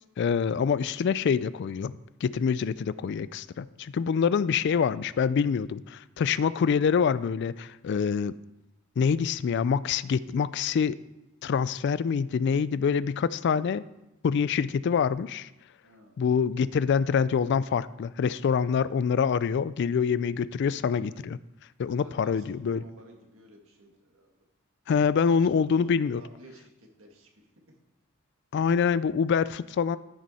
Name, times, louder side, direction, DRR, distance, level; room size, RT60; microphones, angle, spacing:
voice 1, 0.2-1.9 2.2-8.3 9.0-11.0 11.4-13.8 14.2-15.5 16.2-21.4 21.8-22.8 24.9-26.2 28.5-30.0, left 6 dB, 55° left, 17 dB, 0.3 m, -25 dB
voice 2, 21.9-24.3 25.6-26.7 27.0-27.3, right 1 dB, 70° right, 1 dB, 1.9 m, -52 dB
13.5 x 6.2 x 4.2 m, 0.92 s
head